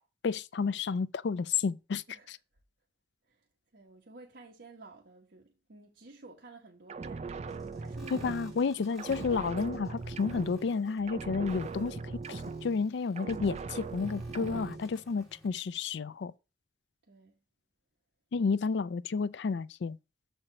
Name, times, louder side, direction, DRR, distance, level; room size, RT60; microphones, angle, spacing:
voice 1, 0.2-2.0 8.1-16.3 18.3-20.0, left 5 dB, 80° left, 0.4 m, -31 dB
voice 2, 3.7-9.2 17.0-17.4, right 2 dB, 75° right, 1.2 m, -53 dB
sound 1, 6.9-8.7 9.0-10.8 11.1-12.9 13.2-14.8, right 4 dB, 40° right, 0.4 m, -40 dB
sound 2, 7.5-15.5, equal, ahead, 2.7 m, -58 dB
6.6 x 4.4 x 5.9 m
head